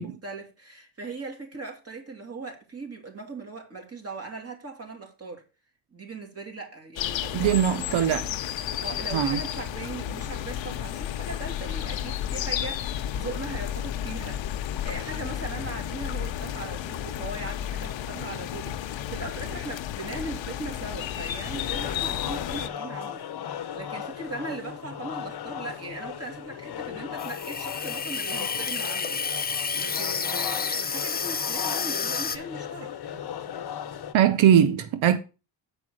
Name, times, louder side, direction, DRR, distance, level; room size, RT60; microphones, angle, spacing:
voice 1, 0.0-5.4 5.9-8.0 8.6-32.9, right 3 dB, 30° right, 2.8 m, -39 dB
sound 1, 7.0-22.7, left 11 dB, 75° left, 0.8 m, -32 dB
voice 2, 7.3-8.2 9.1-9.4 34.1-35.2, right 9 dB, 85° right, 0.8 m, -21 dB
sound 2, 21.5-34.1, left 9 dB, 55° left, 1.0 m, -37 dB
Water tap faucet / Sink (filling or washing), 27.2-32.4, left 5 dB, 20° left, 0.6 m, -30 dB
8.1 x 4.8 x 6.3 m
cardioid pair, 95°, 46 cm